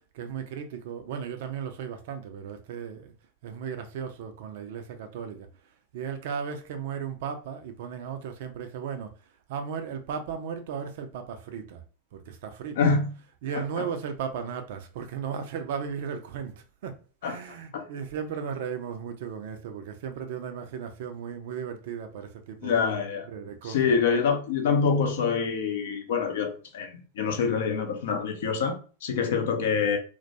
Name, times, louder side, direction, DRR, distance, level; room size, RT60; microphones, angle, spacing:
voice 1, 0.0-3.1 3.4-11.8 12.1-12.9 13.2-22.8 23.2-24.0, right 7 dB, 55° right, 0.4 m, -36 dB
voice 2, 12.8-13.1 13.5-13.9 17.2-17.4 17.7-17.8 22.6-23.3 23.6-30.0, left 5 dB, 55° left, 0.5 m, -26 dB
2.2 x 2.1 x 2.7 m
figure-of-eight pair, 90°, 0 cm